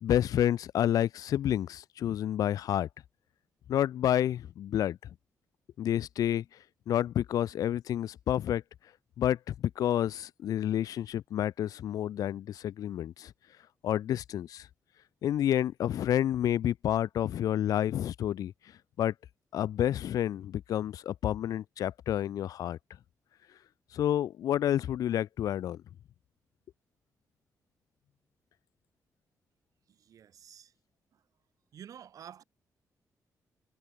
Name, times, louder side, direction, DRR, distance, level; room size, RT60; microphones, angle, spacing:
voice 1, 0.0-2.9 3.7-5.0 5.8-6.4 6.9-8.6 9.2-13.3 13.8-14.7 15.2-18.5 19.0-19.1 19.5-22.8 23.9-25.8, left 11 dB, 70° left, 0.3 m, -29 dB
voice 2, 29.9-30.7 31.7-32.4, right 9 dB, 65° right, 3.0 m, -50 dB
wide cardioid pair, 165°, 6 cm